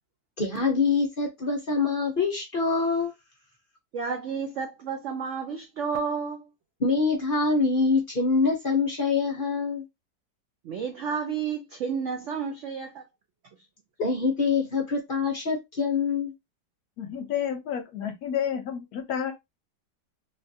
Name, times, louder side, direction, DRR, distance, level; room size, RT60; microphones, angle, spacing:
voice 1, 0.4-3.1 6.8-9.8 14.0-16.3, left 4 dB, 50° left, 0.6 m, -25 dB
voice 2, 3.9-6.4 10.7-13.0, right 6 dB, 80° right, 0.6 m, -31 dB
voice 3, 17.0-19.3, left 8 dB, 70° left, 1.0 m, -30 dB
3.2 x 2.4 x 2.6 m
omnidirectional pair, 1.9 m